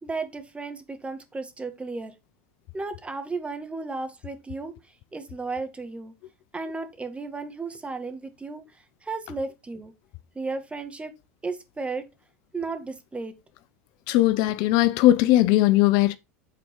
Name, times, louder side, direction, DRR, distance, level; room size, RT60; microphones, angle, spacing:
voice 1, 0.0-2.1 2.7-4.7 5.1-6.1 6.5-8.6 9.0-9.9 10.3-11.1 11.4-12.0 12.5-13.3, right 3 dB, 15° right, 1.8 m, -34 dB
voice 2, 14.1-16.2, left 15 dB, 60° left, 0.6 m, -19 dB
8.4 x 4.3 x 4.8 m
hypercardioid pair, 90°, 8 cm